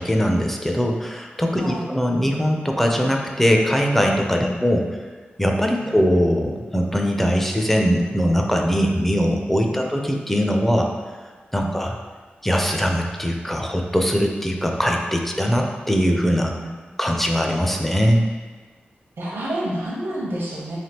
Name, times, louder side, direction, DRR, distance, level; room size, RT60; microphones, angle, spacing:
voice 1, 0.0-4.8 5.4-10.9 11.5-11.9 12.4-16.5 17.0-18.3, equal, 5° left, 2 dB, 0.5 m, -21 dB
voice 2, 1.5-1.9 4.4-4.5 5.8-6.0 9.7-9.9 16.6-17.0 19.2-20.8, equal, 75° right, -5 dB, 0.8 m, -29 dB
3.6 x 3.3 x 2.8 m, 1.4 s
cardioid pair, 55°, 4 cm